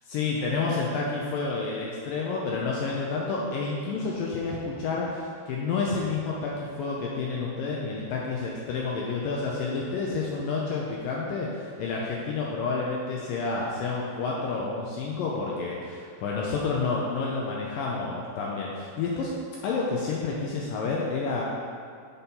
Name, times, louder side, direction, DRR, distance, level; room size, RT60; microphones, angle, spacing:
voice 1, 0.1-19.3 19.6-21.4, left 4 dB, 80° left, -3 dB, 2.0 m, -29 dB
6.7 x 5.4 x 5.6 m, 2.2 s
omnidirectional pair, 4.7 m